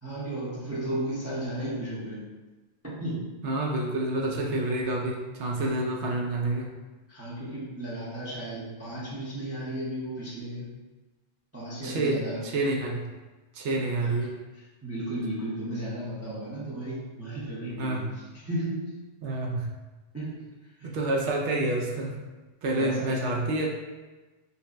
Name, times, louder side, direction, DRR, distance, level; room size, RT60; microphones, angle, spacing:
voice 1, 0.0-2.2 3.0-3.3 7.1-10.7 11.5-12.5 13.9-14.1 14.8-18.0 18.3-18.9 20.1-20.9 22.8-23.2, right 1 dB, 15° right, -9 dB, 0.7 m, -34 dB
voice 2, 3.4-6.7 11.8-13.1 13.5-14.4 17.8-18.1 19.2-19.7 20.8-22.2 22.6-23.7, right 2 dB, 70° right, 0 dB, 0.9 m, -28 dB
5.1 x 2.1 x 2.5 m, 1.2 s
omnidirectional pair, 1.3 m